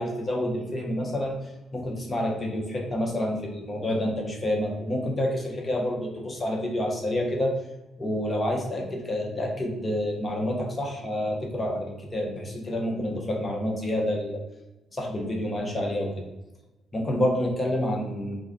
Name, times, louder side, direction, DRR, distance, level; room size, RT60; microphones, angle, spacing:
voice 1, 0.0-1.4 1.7-7.6 8.0-14.4 14.9-16.3 16.9-18.4, left 1 dB, 30° left, 0 dB, 0.7 m, -28 dB
2.4 x 2.2 x 3.5 m, 1.0 s
cardioid pair, 90°, 0 cm